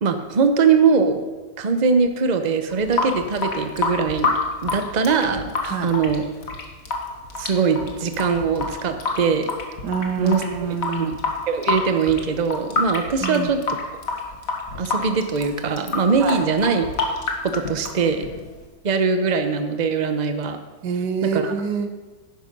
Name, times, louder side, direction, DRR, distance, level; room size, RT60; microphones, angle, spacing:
voice 1, 0.0-1.2 1.6-4.3 4.6-5.5 5.8-6.2 7.4-9.5 10.2-10.5 11.0-11.1 11.5-13.8 14.8-16.9 17.4-18.3 18.8-20.6 21.2-21.5, right 5 dB, 35° right, 8 dB, 0.7 m, -21 dB
Water tap faucet / Sink (filling or washing) / Drip, 2.7-18.6, left 3 dB, 50° left, 1.8 m, -28 dB
voice 2, 9.8-11.1 13.2-13.5 16.2-16.4 20.8-21.9, right 5 dB, 70° right, 7 dB, 1.6 m, -26 dB
11.5 x 9.8 x 5.4 m, 1.2 s
omnidirectional pair, 1.9 m